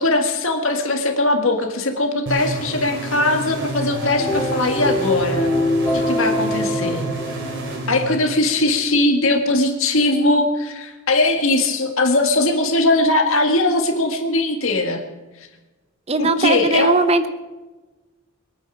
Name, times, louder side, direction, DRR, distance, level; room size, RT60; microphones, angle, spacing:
voice 1, 0.0-5.5 5.9-7.0 7.9-15.0 15.4-15.5 16.2-17.0, left 2 dB, 70° left, 3 dB, 1.8 m, -20 dB
sound 1, 2.3-8.7, right 2 dB, 55° right, 2.9 m, -30 dB
sound 2, 3.9-8.2, left 1 dB, 10° left, 4.8 m, -24 dB
voice 2, 16.1-17.3, right 2 dB, 30° right, 10 dB, 0.9 m, -19 dB
22.5 x 9.4 x 6.2 m, 1.2 s
head